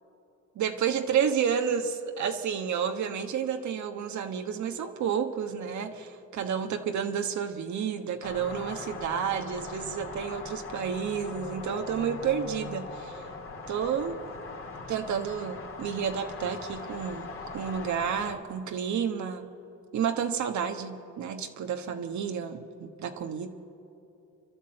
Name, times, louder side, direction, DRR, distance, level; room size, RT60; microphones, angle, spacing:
voice 1, 0.5-13.2 13.7-14.2 14.9-19.5 19.9-23.5, right 7 dB, 70° right, 5 dB, 1.2 m, -30 dB
sound 1, 8.2-18.4, left 4 dB, 45° left, 2.6 m, -40 dB
29.0 x 12.0 x 7.7 m, 2.8 s
cardioid pair, 90°, 30 cm